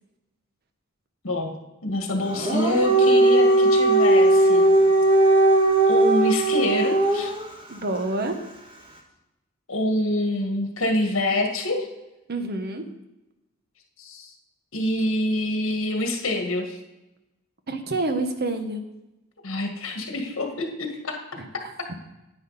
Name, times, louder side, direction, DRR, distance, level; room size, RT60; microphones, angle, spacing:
voice 1, 1.2-4.7 5.9-7.3 9.7-11.9 14.0-14.3 14.7-16.8 19.4-21.2, left 1 dB, 70° left, 3 dB, 1.8 m, -26 dB
Dog, 2.3-7.5, right 2 dB, 25° right, 1.6 m, -18 dB
voice 2, 7.7-8.4 12.3-12.8 17.7-18.8 21.4-21.5, right 2 dB, 50° right, 7 dB, 1.1 m, -27 dB
9.6 x 9.4 x 4.1 m, 0.99 s
head